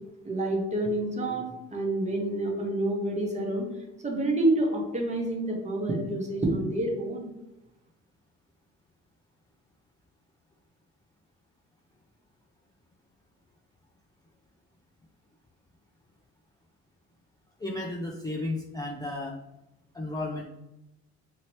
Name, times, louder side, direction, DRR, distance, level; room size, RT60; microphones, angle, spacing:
voice 1, 0.2-3.7 4.0-7.3, right 1 dB, 25° right, 0 dB, 0.9 m, -28 dB
voice 2, 17.6-19.4 19.9-20.5, left 2 dB, 15° left, -2 dB, 0.4 m, -33 dB
2.8 x 2.8 x 3.0 m, 0.92 s
cardioid pair, 90°, 30 cm